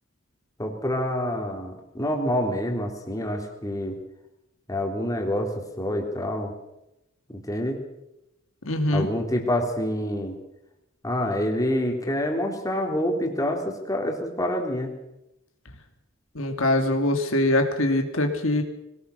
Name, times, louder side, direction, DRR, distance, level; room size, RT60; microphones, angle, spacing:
voice 1, 0.6-4.0 4.7-6.5 7.3-7.8 8.9-10.4 11.0-14.9, left 1 dB, 15° left, 2 dB, 3.4 m, -27 dB
voice 2, 8.6-9.1 16.3-18.6, left 1 dB, 75° left, 5 dB, 2.3 m, -23 dB
22.5 x 18.0 x 6.6 m, 0.88 s
head